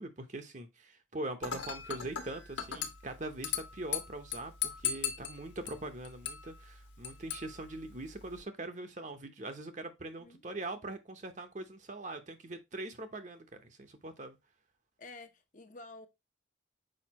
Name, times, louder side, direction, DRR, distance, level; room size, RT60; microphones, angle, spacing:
voice 1, 0.0-14.4, right 2 dB, 40° right, 0.9 m, -42 dB
Dishes pots and pans / Glass, 1.4-8.4, left 9 dB, 70° left, 1.4 m, -40 dB
voice 2, 15.0-16.1, left 3 dB, 40° left, 0.8 m, -50 dB
6.5 x 5.1 x 2.9 m
head